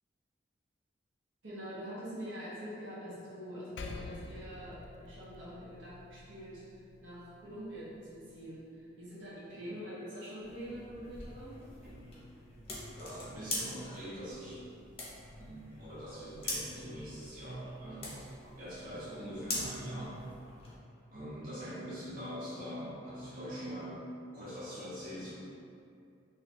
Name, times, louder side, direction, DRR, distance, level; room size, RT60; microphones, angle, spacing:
voice 1, 1.4-4.8 5.0-11.5 18.4-18.5, equal, 80° right, -9 dB, 1.0 m, -45 dB
Percussion, 3.8-8.5, left 3 dB, 70° left, 0.3 m, -48 dB
sound 1, 10.4-20.8, left 2 dB, 30° left, 0.7 m, -44 dB
voice 2, 13.0-14.6 15.4-20.2 21.1-24.0 24.3-25.3, equal, 45° right, -10 dB, 0.9 m, -43 dB
2.8 x 2.3 x 4.2 m, 2.5 s
head